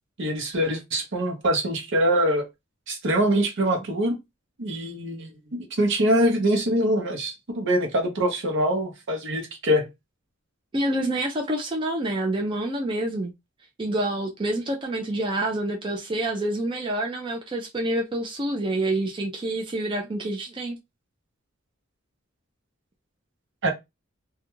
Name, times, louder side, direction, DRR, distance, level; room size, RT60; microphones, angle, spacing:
voice 1, 0.2-2.5 2.9-4.2 4.6-9.9 23.6-23.7, equal, 60° right, 0.7 m, -24 dB
voice 2, 10.7-13.3 13.8-20.8, right 1 dB, 25° right, 0.4 m, -27 dB
2.3 x 2.2 x 3.0 m
head